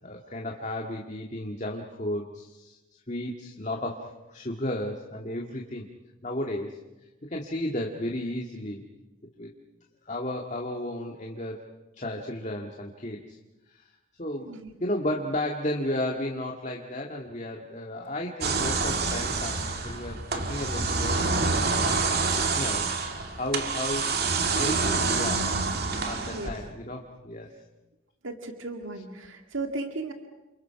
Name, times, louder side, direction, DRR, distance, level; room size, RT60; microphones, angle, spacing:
voice 1, 0.0-5.9 6.2-6.8 7.2-8.8 9.4-9.5 10.0-11.6 11.9-13.4 13.7-13.9 14.2-14.5 14.8-21.7 22.0-22.3 22.6-23.0 23.3-25.5 26.0-27.5, left 1 dB, 35° left, 1 dB, 1.9 m, -33 dB
sound 1, 18.4-26.7, right 4 dB, 50° right, 2.4 m, -27 dB
voice 2, 28.2-30.1, right 2 dB, 75° right, 5 dB, 2.1 m, -35 dB
30.0 x 27.5 x 5.9 m, 1.0 s
head